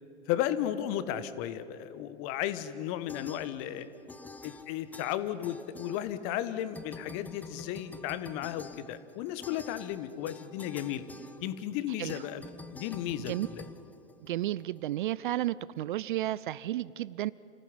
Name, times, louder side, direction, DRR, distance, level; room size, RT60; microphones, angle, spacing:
voice 1, 0.3-3.9 4.4-11.0 11.4-12.4 12.7-13.7, left 11 dB, 35° left, 13 dB, 1.4 m, -34 dB
sound 1, 3.1-3.8 4.1-6.4 6.7-14.6, left 3 dB, 5° left, 0.8 m, -48 dB
voice 2, 14.2-17.3, right 14 dB, 45° right, 20 dB, 0.5 m, -32 dB
29.0 x 15.5 x 9.8 m, 2.8 s
figure-of-eight pair, 105°, 35 cm